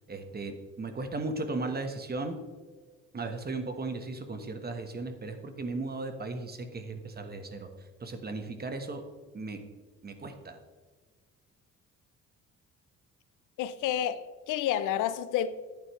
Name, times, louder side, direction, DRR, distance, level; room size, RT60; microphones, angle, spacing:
voice 1, 0.1-2.4 3.1-7.7 8.0-9.0 9.3-9.6 10.0-10.6, right 3 dB, 30° right, 1.3 m, -36 dB
voice 2, 13.6-15.5, left 10 dB, 90° left, 0.6 m, -30 dB
11.0 x 8.8 x 3.2 m
cardioid pair, 90°, 30 cm